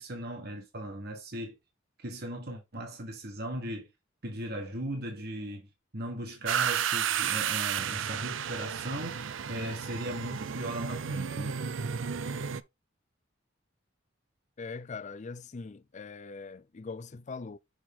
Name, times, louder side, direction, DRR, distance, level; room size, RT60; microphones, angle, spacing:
voice 1, 0.0-1.6 2.0-3.9 4.2-5.7 5.9-11.6, right 1 dB, 55° right, 1.4 m, -38 dB
sound 1, 6.5-12.6, right 8 dB, 70° right, 0.5 m, -32 dB
voice 2, 14.6-17.6, left 4 dB, 35° left, 0.4 m, -41 dB
6.4 x 4.4 x 3.7 m
head